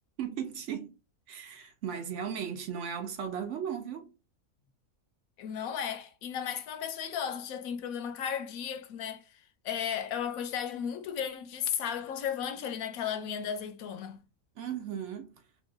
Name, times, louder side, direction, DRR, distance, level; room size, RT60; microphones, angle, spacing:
voice 1, 0.2-0.9 1.3-4.1 14.6-15.3, right 8 dB, 65° right, 0.8 m, -36 dB
voice 2, 5.4-14.2, left 8 dB, 75° left, 1.0 m, -35 dB
2.9 x 2.2 x 3.7 m
omnidirectional pair, 1.5 m